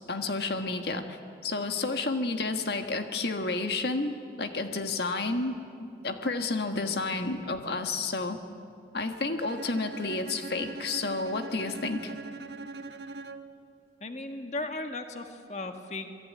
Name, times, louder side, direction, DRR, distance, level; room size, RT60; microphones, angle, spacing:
voice 1, 0.1-1.2 1.4-8.4 8.9-12.1, left 3 dB, 65° left, 5 dB, 1.6 m, -31 dB
Bowed string instrument, 9.4-13.6, right 3 dB, 75° right, 1.4 m, -42 dB
voice 2, 14.0-16.1, left 2 dB, 40° left, 5 dB, 1.7 m, -37 dB
27.5 x 21.5 x 9.5 m, 2.5 s
head